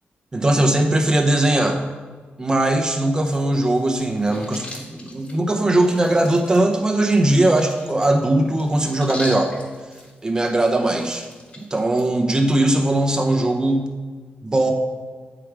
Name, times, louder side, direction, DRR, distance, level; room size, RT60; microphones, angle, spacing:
voice 1, 0.3-1.8 2.4-9.5 10.2-11.2 11.6-13.9 14.4-14.7, right 1 dB, 20° right, 3 dB, 0.8 m, -19 dB
sound 1, 3.2-12.0, left 2 dB, 35° left, 1.4 m, -41 dB
8.5 x 4.9 x 4.7 m, 1.4 s
wide cardioid pair, 145°, 4 cm